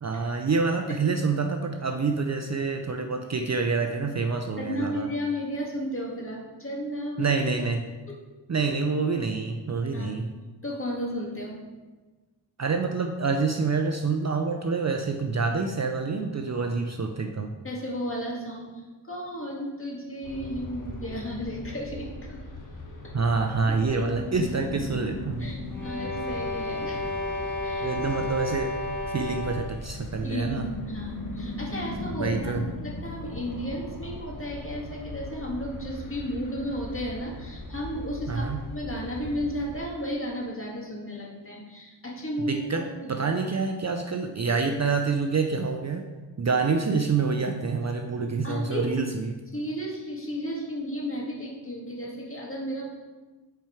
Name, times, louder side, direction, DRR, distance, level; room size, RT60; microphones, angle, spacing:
voice 1, 0.0-5.1 7.2-7.8 8.5-10.3 12.6-17.5 23.1-25.5 27.8-28.7 29.1-30.7 32.2-32.6 38.3-38.6 42.4-46.0 46.4-49.4, right 4 dB, 35° right, 4 dB, 0.6 m, -27 dB
voice 2, 4.6-7.4 9.9-10.2 10.6-11.6 17.6-22.4 23.9-24.0 25.4-27.1 27.6-27.9 30.2-30.5 30.9-43.2 48.4-49.1 49.5-52.8, equal, 25° left, -3 dB, 2.1 m, -34 dB
sound 1, 20.2-39.8, left 2 dB, 45° left, 1.3 m, -38 dB
sound 2, 25.7-29.8, left 2 dB, 5° left, 2.6 m, -32 dB
8.2 x 4.5 x 4.6 m, 1.3 s
cardioid pair, 75°, 46 cm